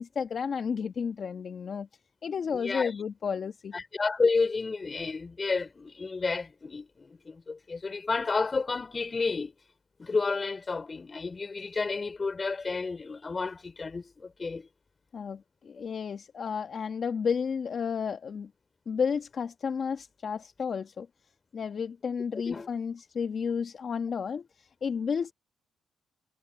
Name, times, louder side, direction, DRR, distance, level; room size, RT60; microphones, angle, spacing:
voice 1, 0.0-1.9 2.2-3.7 15.1-18.5 18.9-21.1 21.5-25.3, left 6 dB, 50° left, 1.5 m, -32 dB
voice 2, 2.5-2.9 3.7-9.5 10.0-14.7 22.3-22.7, left 4 dB, 30° left, 5.6 m, -31 dB
cardioid pair, 90°, 0 cm